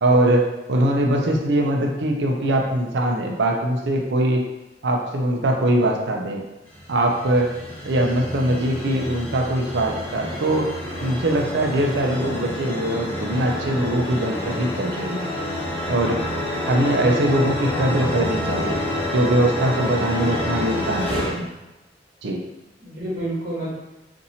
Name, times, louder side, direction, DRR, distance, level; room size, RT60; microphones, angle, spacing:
voice 1, 0.0-4.4 4.8-6.4 6.9-7.5 7.8-10.7 11.0-15.3 15.9-16.2 16.7-18.8 19.1-21.5 22.2-22.4, right 1 dB, 75° right, 2 dB, 0.5 m, -22 dB
sound 1, 6.7-21.3, left 1 dB, 10° left, 0.9 m, -28 dB
voice 2, 17.0-18.2 22.8-23.8, right 1 dB, 50° right, -8 dB, 1.3 m, -31 dB
2.8 x 2.6 x 4.1 m, 1.0 s
head